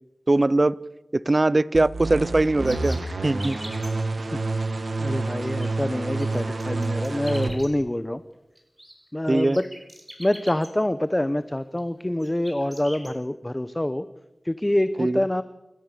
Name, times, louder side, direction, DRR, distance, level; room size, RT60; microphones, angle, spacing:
voice 1, 0.3-0.8 1.1-3.6 9.3-9.6 15.0-15.2, right 2 dB, 45° right, 19 dB, 0.6 m, -21 dB
sound 1, 1.7-7.5, right 3 dB, 80° right, 2.2 m, -28 dB
sound 2, 2.6-3.9 5.4-5.7 6.0-7.7 8.5-8.9 9.3-10.7 11.6-11.8 12.2-13.1, right 1 dB, 15° right, 6.1 m, -42 dB
voice 2, 4.3-4.7 5.0-8.2 9.1-9.7 10.2-14.1 14.4-15.4, left 1 dB, 20° left, 12 dB, 0.9 m, -26 dB
29.0 x 14.0 x 6.8 m, 1.0 s
wide cardioid pair, 45°, 0 cm